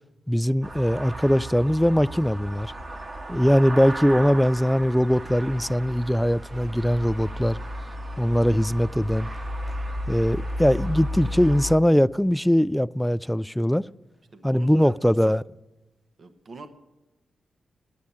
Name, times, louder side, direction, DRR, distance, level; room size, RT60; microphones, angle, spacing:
voice 1, 0.3-2.7 3.3-7.6 8.2-9.3 10.1-13.9 14.4-15.4, equal, 5° left, 0.3 m, -21 dB
sound 1, 0.6-11.8, equal, 35° right, 1.4 m, -34 dB
voice 2, 14.3-15.3 16.2-16.7, right 2 dB, 55° right, 1.0 m, -42 dB
10.5 x 8.5 x 9.9 m
supercardioid pair, 40°, 0 cm